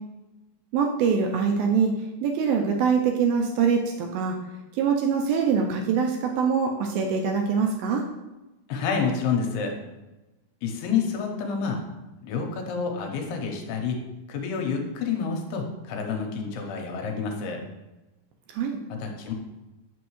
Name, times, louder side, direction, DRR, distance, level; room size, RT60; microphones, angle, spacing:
voice 1, 0.7-4.4 4.7-8.0 18.5-18.8, right 6 dB, 80° right, 2 dB, 2.2 m, -24 dB
voice 2, 8.7-9.7 10.6-11.8 12.2-14.0 14.3-17.6 19.0-19.3, left 5 dB, 80° left, 2 dB, 2.7 m, -28 dB
8.1 x 6.0 x 3.1 m, 1.1 s
omnidirectional pair, 4.6 m